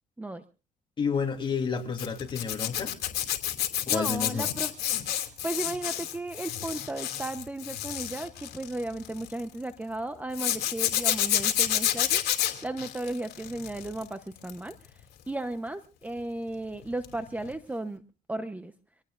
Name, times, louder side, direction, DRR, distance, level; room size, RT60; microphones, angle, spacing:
voice 1, 1.0-2.9 3.9-4.5, left 6 dB, 30° left, 3 dB, 3.1 m, -30 dB
Zipper (clothing), 2.0-9.4 10.3-14.0 14.4-14.7 17.0-17.2 17.5-17.6, left 12 dB, 70° left, 2.9 m, -29 dB
voice 2, 3.9-4.7 5.4-12.2 12.6-14.7 15.3-18.0 18.3-18.7, right 2 dB, 10° right, 9 dB, 0.9 m, -35 dB
26.0 x 18.0 x 2.5 m, 0.35 s
cardioid pair, 110°, 17 cm